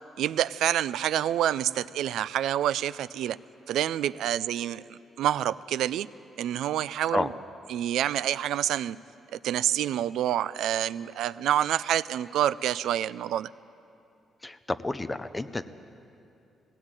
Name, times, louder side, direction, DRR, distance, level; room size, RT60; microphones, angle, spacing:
voice 1, 0.2-3.4 3.7-6.1 6.4-7.3 7.7-9.0 9.3-13.5, right 11 dB, 85° right, 18 dB, 0.4 m, -27 dB
voice 2, 14.4-15.7, left 2 dB, 10° left, 11 dB, 0.6 m, -30 dB
18.5 x 16.5 x 9.0 m, 2.7 s
cardioid pair, 155°, 0 cm